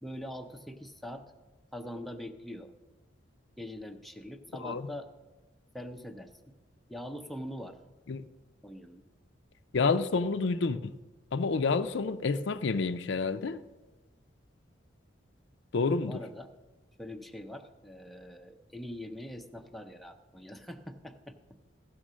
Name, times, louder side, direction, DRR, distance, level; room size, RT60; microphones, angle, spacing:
voice 1, 0.0-1.2 1.7-2.7 3.6-5.1 5.7-6.5 6.9-7.8 8.6-9.0 16.0-16.5 17.0-21.4, left 1 dB, ahead, 0.5 m, -43 dB
voice 2, 9.7-10.9 11.3-13.6 15.7-16.2, left 4 dB, 70° left, 0.5 m, -29 dB
15.5 x 6.3 x 6.3 m
head